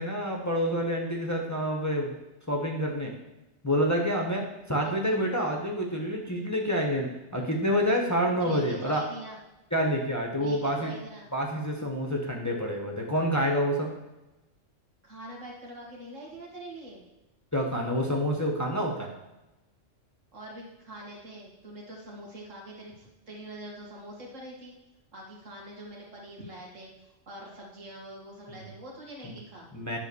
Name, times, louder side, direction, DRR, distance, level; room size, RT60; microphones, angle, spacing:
voice 1, 0.0-2.1 2.5-3.1 3.6-9.0 9.7-10.9 11.3-13.9 17.5-19.1 28.5-28.7 29.2-29.3 29.7-30.0, equal, 15° left, -1 dB, 1.1 m, -28 dB
voice 2, 8.4-9.4 10.4-11.3 15.0-17.0 20.3-24.7 25.1-26.9 27.3-29.7, right 1 dB, 80° right, -2 dB, 2.3 m, -44 dB
11.0 x 3.8 x 6.9 m, 1.0 s
omnidirectional pair, 1.3 m